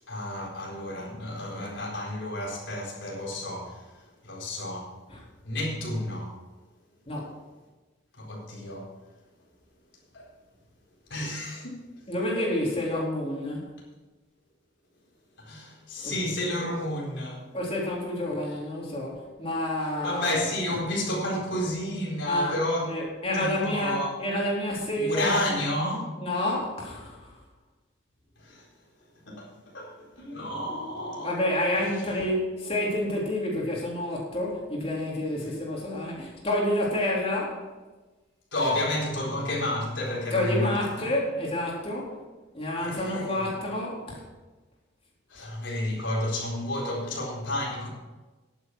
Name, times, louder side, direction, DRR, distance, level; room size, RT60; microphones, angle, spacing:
voice 1, 0.1-3.9 4.2-4.9 5.4-6.4 8.2-8.9 10.1-10.3 11.1-11.9 15.4-17.5 20.0-22.9 23.3-24.2 25.0-26.0 28.4-28.7 29.3-31.3 31.8-32.0 38.5-41.1 42.8-43.5 45.3-47.9, left 1 dB, 70° left, 4.3 m, -31 dB
voice 2, 7.1-7.4 12.1-13.6 16.0-16.2 17.5-20.4 22.3-22.6 22.9-25.4 26.2-27.3 31.2-37.6 40.3-42.2 42.5-44.2, left 1 dB, 30° left, 3.6 m, -29 dB
11.0 x 9.6 x 6.3 m
head